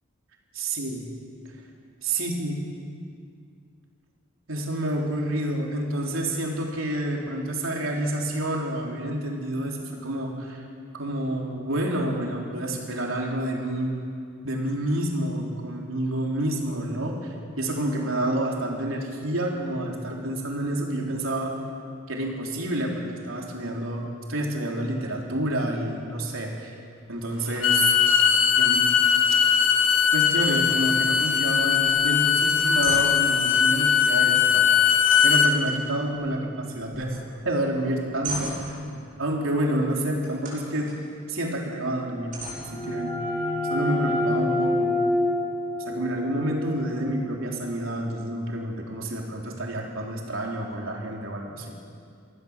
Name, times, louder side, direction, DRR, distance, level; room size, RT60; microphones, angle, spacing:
voice 1, 0.5-1.0 2.0-2.6 4.5-10.6 10.9-14.0 14.4-21.5 22.1-26.7 27.1-28.0 28.6-28.9 30.1-34.9 35.2-37.2 37.4-40.9 41.3-43.1 43.7-45.0 45.9-51.7, right 1 dB, 85° right, -1 dB, 3.7 m, -29 dB
Bowed string instrument, 27.5-35.5, left 7 dB, 80° left, 2.1 m, -20 dB
sound 1, 30.8-31.0 31.2-31.4 31.8-32.0 32.4-33.4 35.0-36.5 36.8-37.3 37.7-39.0 40.2-41.0 41.5-41.6 42.3-43.3, right 2 dB, 40° right, 8.0 m, -37 dB
sound 2, 42.2-47.8, left 2 dB, 35° left, 3.3 m, -28 dB
25.5 x 16.0 x 7.4 m, 2.3 s
head